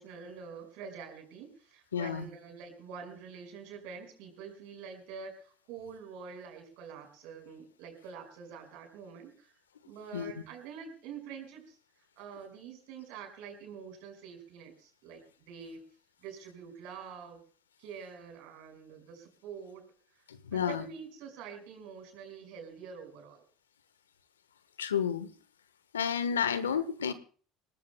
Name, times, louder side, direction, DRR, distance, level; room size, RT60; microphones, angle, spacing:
voice 1, 0.0-9.5 9.8-11.8 12.2-15.2 15.5-15.8 16.2-17.4 17.8-19.8 20.1-20.2 20.5-23.4, right 6 dB, 65° right, 4 dB, 5.4 m, -46 dB
voice 2, 1.9-2.2 10.1-10.4 20.3-20.8 24.8-25.3 25.9-27.1, left 7 dB, 85° left, 14 dB, 1.2 m, -31 dB
26.0 x 19.0 x 2.2 m, 0.42 s
hypercardioid pair, 65°, 0 cm